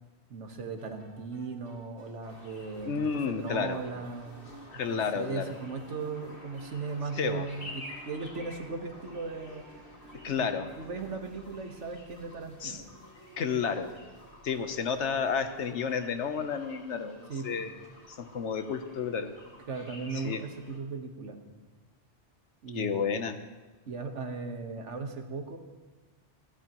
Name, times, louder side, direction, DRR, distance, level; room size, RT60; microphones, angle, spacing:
voice 1, 0.3-4.5 4.9-9.7 10.4-10.5 10.8-12.9 17.3-17.7 19.7-21.6 22.6-23.2 23.8-25.6, right 4 dB, 80° right, 5 dB, 1.6 m, -37 dB
sound 1, 0.8-16.7, right 2 dB, 10° right, 4.2 m, -56 dB
sound 2, 2.2-20.8, left 1 dB, 50° left, 2.6 m, -50 dB
voice 2, 2.9-3.8 4.7-5.5 7.2-7.4 10.1-10.7 12.6-12.8 13.4-13.9 14.4-17.8 18.1-19.3 20.1-20.4 22.7-23.4, left 6 dB, 75° left, 9 dB, 1.2 m, -31 dB
28.5 x 11.5 x 3.0 m, 1.2 s
omnidirectional pair, 1.2 m